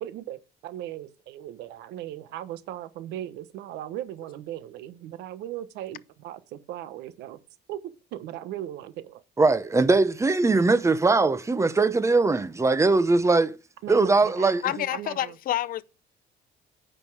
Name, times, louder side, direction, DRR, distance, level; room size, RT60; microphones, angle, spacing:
voice 1, 0.0-7.4 7.7-7.8 8.1-9.2 13.8-15.3, right 12 dB, 85° right, 1.2 m, -38 dB
voice 2, 9.4-13.6 13.9-14.6, right 3 dB, 15° right, 0.9 m, -21 dB
voice 3, 14.6-15.8, left 13 dB, 60° left, 0.6 m, -28 dB
9.7 x 5.6 x 4.8 m
cardioid pair, 110°, 17 cm